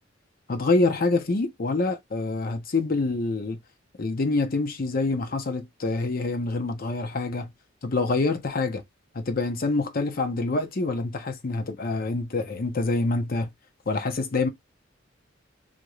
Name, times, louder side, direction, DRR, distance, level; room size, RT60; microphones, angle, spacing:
voice 1, 0.5-3.6 4.0-7.5 7.8-8.8 9.1-13.5 13.9-14.5, left 3 dB, 50° left, 0.7 m, -26 dB
2.8 x 2.6 x 3.0 m
head